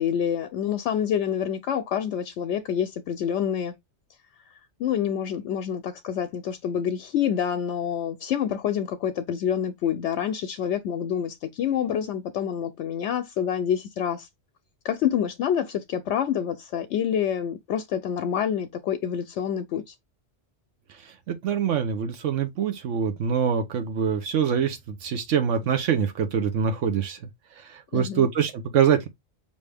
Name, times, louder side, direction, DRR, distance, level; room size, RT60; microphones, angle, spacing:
voice 1, 0.0-3.7 4.8-14.3 14.8-19.9 27.9-28.3, left 9 dB, 75° left, 0.9 m, -27 dB
voice 2, 21.3-27.2 27.7-29.1, right 7 dB, 85° right, 1.1 m, -24 dB
5.3 x 2.8 x 3.3 m
omnidirectional pair, 1.2 m